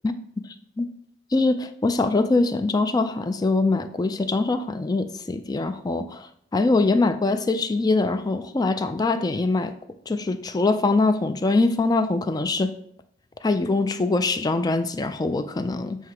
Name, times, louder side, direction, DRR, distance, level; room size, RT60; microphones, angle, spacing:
voice 1, 1.3-6.3 6.5-9.7 10.1-12.7 13.4-16.0, left 3 dB, 20° left, 10 dB, 0.3 m, -23 dB
7.6 x 2.8 x 4.6 m, 0.66 s
head